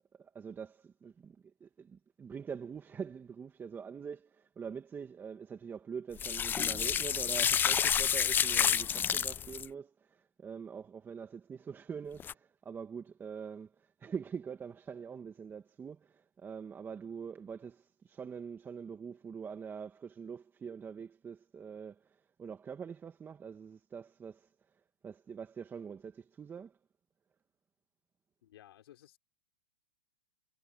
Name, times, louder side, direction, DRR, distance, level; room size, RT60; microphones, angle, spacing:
voice 1, 0.2-24.5 25.0-26.8, right 6 dB, 15° right, 1.9 m, -44 dB
sound 1, 6.2-9.7 12.2-12.3, left 8 dB, 15° left, 0.4 m, -29 dB
voice 2, 28.4-29.2, left 12 dB, 70° left, 5.5 m, -57 dB
hypercardioid pair, 135°, 13 cm